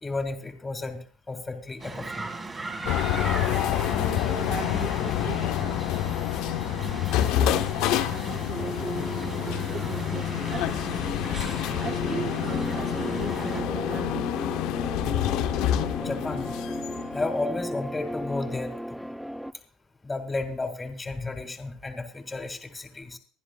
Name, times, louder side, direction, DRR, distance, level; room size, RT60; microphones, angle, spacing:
voice 1, 0.0-1.0 1.3-2.3 4.2-4.4 16.0-16.5 17.1-19.0 20.0-23.2, left 3 dB, 15° left, 4 dB, 2.1 m, -33 dB
sound 1, 1.8-13.6, right 3 dB, 25° right, 2.0 m, -38 dB
sound 2, 2.9-17.4, left 13 dB, 70° left, 0.7 m, -28 dB
voice 2, 3.9-5.9 7.2-11.2 11.8-14.3, right 7 dB, 45° right, 7 dB, 0.7 m, -39 dB
sound 3, 8.6-19.5, equal, ahead, 0.5 m, -35 dB
24.5 x 10.0 x 2.3 m, 0.39 s
supercardioid pair, 110°, 0 cm